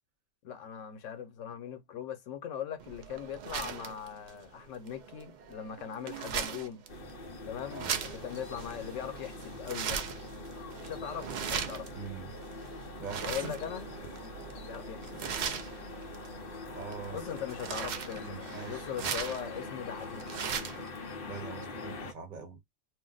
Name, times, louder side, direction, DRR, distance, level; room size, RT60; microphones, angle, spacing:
voice 1, 0.4-6.9 7.5-10.0 10.8-11.9 13.2-13.8 14.6-15.0 17.1-20.5, left 9 dB, 90° left, 1.0 m, -40 dB
sound 1, 2.8-20.9, right 7 dB, 65° right, 0.4 m, -40 dB
sound 2, 6.9-22.1, left 2 dB, 55° left, 0.8 m, -43 dB
voice 2, 7.5-7.9 11.9-12.4 13.0-13.5 16.7-17.2 18.1-18.8 21.2-22.6, right 5 dB, 45° right, 1.0 m, -43 dB
2.5 x 2.0 x 3.7 m
omnidirectional pair, 1.2 m